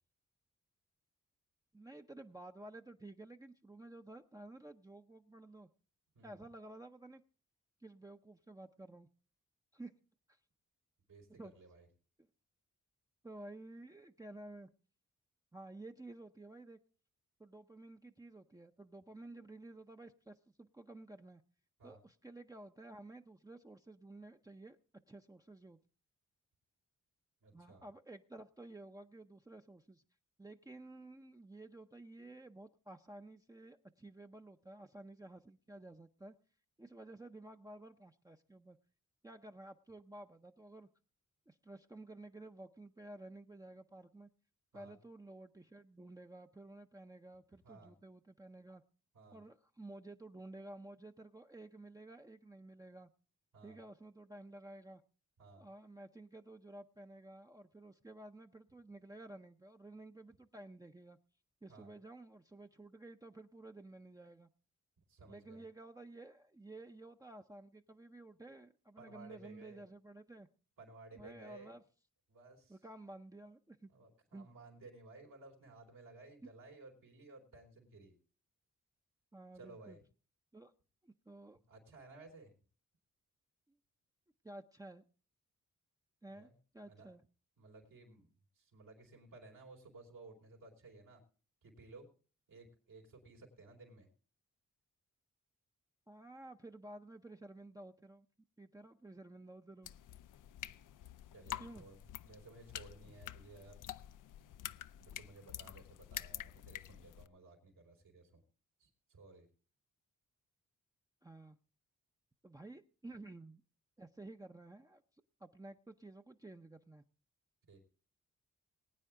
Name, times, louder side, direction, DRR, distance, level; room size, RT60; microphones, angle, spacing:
voice 1, 1.7-5.7 6.2-7.2 7.8-9.1 9.7-9.9 10.3-10.4 11.4-11.5 13.2-14.7 15.5-16.8 17.4-21.4 21.8-24.8 25.1-25.8 27.5-30.0 30.4-36.3 36.8-38.8 39.2-40.9 41.5-44.3 44.7-48.8 49.3-53.1 53.6-55.0 55.6-61.2 61.6-64.5 65.3-70.5 71.2-71.8 72.7-73.9 74.3-74.5 76.4-76.5 79.3-80.0 80.5-80.7 81.0-81.6 84.4-85.0 86.2-87.2 96.1-98.3 98.6-99.9 101.6-101.9 111.2-111.6 112.4-113.6 114.0-115.0 115.4-117.0, right 2 dB, 10° right, 4 dB, 0.6 m, -53 dB
voice 2, 11.1-11.9 21.8-22.0 27.4-27.8 44.7-45.0 47.6-47.9 49.1-49.4 53.5-53.8 55.4-55.6 61.7-61.9 65.1-65.6 69.0-69.9 70.8-71.7 72.3-72.8 73.9-78.1 79.5-80.0 81.7-82.5 86.3-86.6 86.8-87.1 87.6-88.3 88.6-91.2 91.6-92.1 92.5-94.1 101.3-103.8 105.0-108.4 108.8-109.5 117.7-117.8, right 3 dB, 80° right, 0 dB, 4.4 m, -57 dB
sound 1, 99.8-107.3, left 12 dB, 70° left, 0.5 m, -48 dB
20.5 x 9.0 x 3.7 m, 0.38 s
cardioid pair, 70°, 32 cm